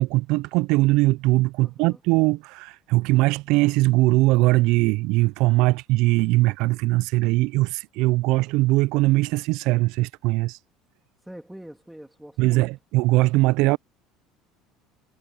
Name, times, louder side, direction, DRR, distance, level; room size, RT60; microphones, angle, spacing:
voice 1, 0.0-10.6 12.4-13.8, right 21 dB, 70° right, 0.3 m, -21 dB
voice 2, 1.6-2.0 11.2-12.7, right 1 dB, ahead, 3.0 m, -43 dB
cardioid pair, 140°, 0 cm